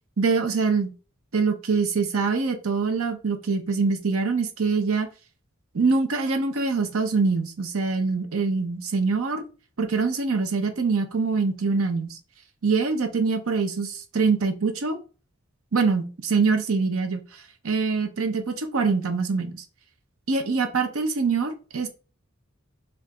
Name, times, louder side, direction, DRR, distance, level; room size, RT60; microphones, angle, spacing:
voice 1, 0.2-0.9 1.3-5.1 5.7-9.4 9.8-12.2 12.6-15.0 15.7-17.2 17.6-19.6 20.3-21.9, right 4 dB, 75° right, 7 dB, 0.7 m, -24 dB
4.6 x 2.5 x 3.5 m, 0.34 s
head